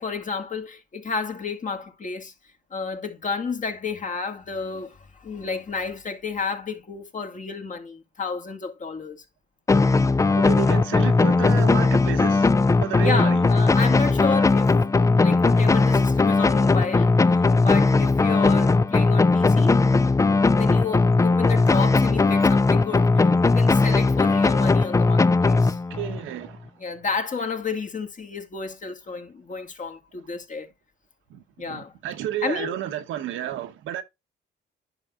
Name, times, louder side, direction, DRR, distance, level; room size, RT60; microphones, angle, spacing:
voice 1, 0.0-2.3 2.7-9.2 13.0-19.8 20.5-25.8 26.8-30.7 31.6-31.9 32.4-32.8, left 5 dB, 40° left, 2.1 m, -31 dB
sound 1, 9.7-26.2, left 3 dB, 15° left, 0.4 m, -19 dB
voice 2, 10.3-13.5 25.9-26.7 31.3-34.0, right 11 dB, 90° right, 1.1 m, -31 dB
10.5 x 6.0 x 2.4 m
cardioid pair, 90°, 20 cm